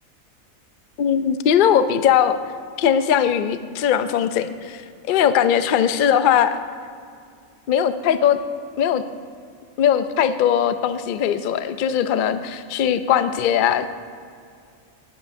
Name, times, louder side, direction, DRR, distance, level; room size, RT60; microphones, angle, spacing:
voice 1, 1.0-2.4 2.8-6.6 7.7-8.4 8.8-9.0 9.8-13.9, left 9 dB, 75° left, 11 dB, 0.4 m, -19 dB
18.0 x 8.6 x 2.6 m, 2.3 s
omnidirectional pair, 1.4 m